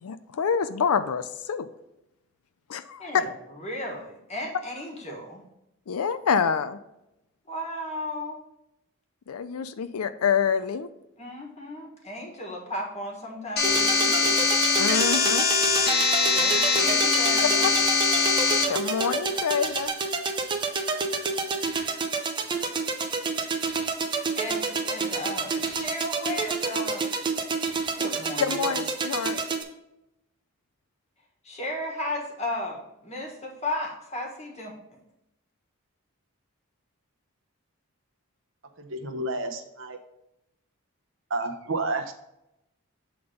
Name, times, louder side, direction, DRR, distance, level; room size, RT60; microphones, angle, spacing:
voice 1, 0.0-1.7 2.7-3.1 5.9-6.8 9.3-10.9 14.8-15.4 17.6-17.7 18.7-19.9 28.4-29.4, left 6 dB, 80° left, 11 dB, 0.4 m, -27 dB
voice 2, 3.0-5.4 7.5-8.4 11.2-14.4 16.3-17.6 24.4-27.0 27.9-28.8 31.4-35.0, left 1 dB, 30° left, 0 dB, 1.5 m, -35 dB
sound 1, 13.6-18.6, left 4 dB, 45° left, 1.0 m, -22 dB
sound 2, 13.6-29.6, right 4 dB, 20° right, 0.5 m, -29 dB
voice 3, 38.8-40.0 41.3-42.1, right 2 dB, 60° right, 5 dB, 0.8 m, -30 dB
7.8 x 3.7 x 5.0 m, 0.88 s
head